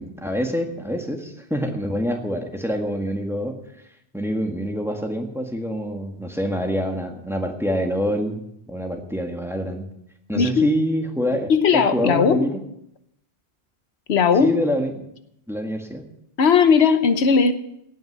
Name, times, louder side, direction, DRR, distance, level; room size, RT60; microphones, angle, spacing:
voice 1, 0.0-3.6 4.1-8.4 8.7-9.9 10.3-12.6 14.4-14.9 15.5-16.1, equal, ahead, 3 dB, 1.7 m, -26 dB
voice 2, 10.3-10.7 11.5-12.5 14.1-14.6 16.4-17.5, left 6 dB, 90° left, 10 dB, 1.2 m, -17 dB
17.5 x 6.4 x 8.1 m, 0.78 s
omnidirectional pair, 1.1 m